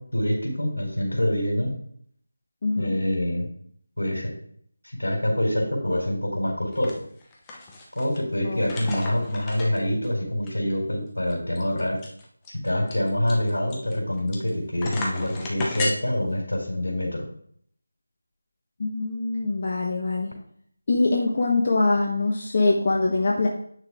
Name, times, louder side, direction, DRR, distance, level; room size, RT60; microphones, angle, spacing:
voice 1, 0.0-1.8 2.8-3.5 4.0-4.3 4.9-6.9 7.9-12.0 12.5-17.3, left 1 dB, 80° left, 0 dB, 4.0 m, -26 dB
voice 2, 2.6-2.9 8.4-9.0 18.8-20.3 20.9-23.5, left 3 dB, 40° left, -2 dB, 1.2 m, -23 dB
sound 1, 6.7-6.9 7.2-8.2 8.6-10.1 10.5-10.6 10.8-10.9 11.3-14.5 14.8-15.9, left 2 dB, 15° left, 1.1 m, -33 dB
9.0 x 6.4 x 3.7 m, 0.63 s
figure-of-eight pair, 165°, 0 cm